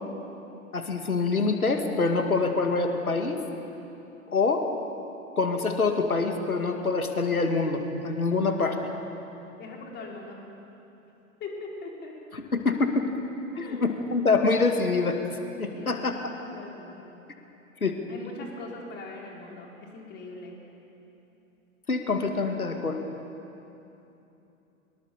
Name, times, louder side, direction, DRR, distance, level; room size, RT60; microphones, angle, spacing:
voice 1, 0.7-3.4 4.3-4.7 5.4-8.8 12.3-13.0 13.6-15.2 15.6-16.3 17.8-18.0 21.9-23.0, left 3 dB, 80° left, 5 dB, 2.4 m, -25 dB
voice 2, 9.6-10.4 11.4-12.1 13.5-13.8 15.7-17.1 18.1-20.6, left 3 dB, 25° left, -1 dB, 4.3 m, -41 dB
23.5 x 21.0 x 7.0 m, 3.0 s
figure-of-eight pair, 105°, 43 cm